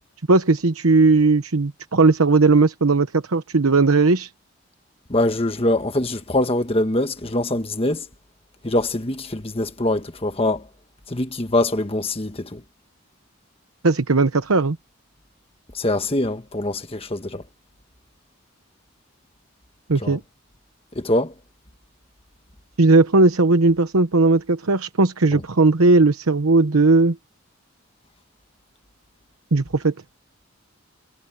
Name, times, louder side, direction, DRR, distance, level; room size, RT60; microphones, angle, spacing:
voice 1, 0.3-4.3 13.8-14.8 19.9-20.2 22.8-27.2 29.5-29.9, right 3 dB, 85° right, 1.0 m, -17 dB
voice 2, 5.1-8.1 8.6-10.7 11.1-12.6 15.7-17.4 19.9-20.2 20.9-21.3 25.3-25.4, left 1 dB, 25° left, 1.3 m, -23 dB
head